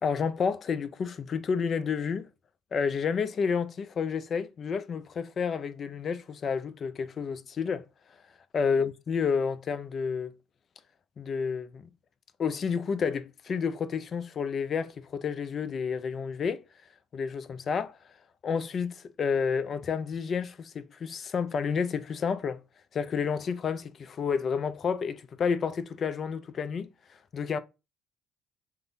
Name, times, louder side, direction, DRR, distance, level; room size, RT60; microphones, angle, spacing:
voice 1, 0.0-2.3 2.7-7.9 8.5-10.3 11.2-11.9 12.4-16.6 17.1-18.0 18.4-22.6 22.9-26.9 27.3-27.6, left 6 dB, 45° left, 0.4 m, -30 dB
3.6 x 2.0 x 2.5 m
supercardioid pair, 75°, 0 cm